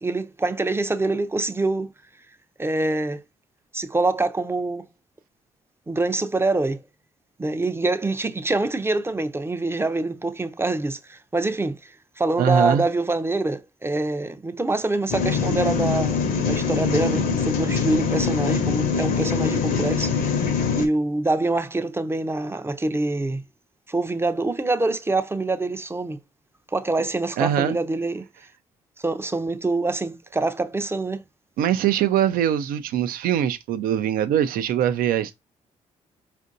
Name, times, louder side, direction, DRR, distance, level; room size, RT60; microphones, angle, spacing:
voice 1, 0.0-1.9 2.6-3.2 3.7-4.9 5.9-6.8 7.4-20.2 20.4-23.4 23.9-26.2 26.7-28.3 29.0-31.2, right 2 dB, 15° right, 0.5 m, -25 dB
voice 2, 12.4-12.8 27.4-27.8 31.6-35.4, right 10 dB, 70° right, 0.5 m, -22 dB
sound 1, 15.1-20.9, left 5 dB, 70° left, 0.8 m, -23 dB
4.4 x 2.6 x 2.6 m
hypercardioid pair, 50°, 15 cm